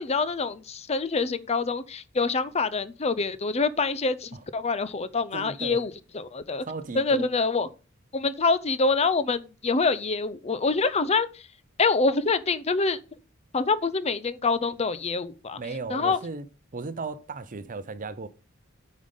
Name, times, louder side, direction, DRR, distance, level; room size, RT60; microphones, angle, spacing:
voice 1, 0.0-6.6 6.9-7.7 8.1-11.3 11.8-13.0 13.5-15.6 15.9-16.2, left 4 dB, 30° left, 0.6 m, -26 dB
voice 2, 5.3-5.9 6.7-7.3 15.6-16.5 16.7-18.3, right 4 dB, 40° right, 0.7 m, -35 dB
9.4 x 5.2 x 5.2 m
head